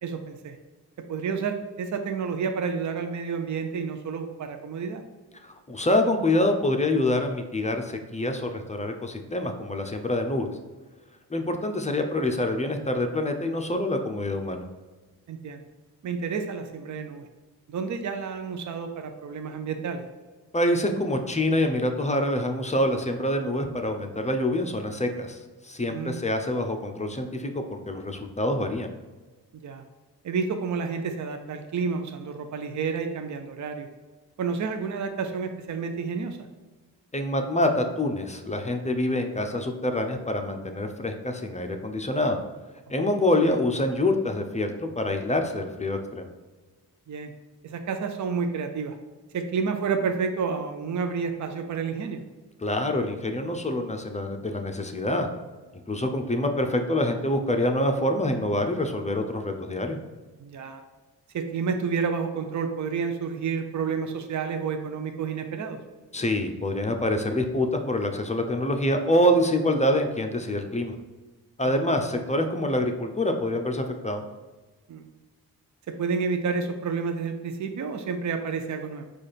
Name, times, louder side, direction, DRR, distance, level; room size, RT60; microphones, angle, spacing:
voice 1, 0.0-0.6 1.1-5.0 15.3-15.6 16.0-17.3 17.7-20.0 25.8-26.2 29.5-29.8 30.2-33.9 34.4-36.4 43.0-43.1 47.1-47.3 47.6-49.0 49.3-52.2 60.4-60.8 61.3-65.8 71.6-71.8 74.9-75.1 75.9-79.0, right 5 dB, 45° right, 6 dB, 0.6 m, -30 dB
voice 2, 5.3-10.5 11.3-14.7 20.5-25.4 25.6-28.9 37.1-42.4 42.9-46.3 52.6-55.3 55.9-60.0 66.1-70.9 71.6-74.2, left 1 dB, 15° left, 5 dB, 0.6 m, -26 dB
4.8 x 2.5 x 4.1 m, 1.3 s
supercardioid pair, 40°, 41 cm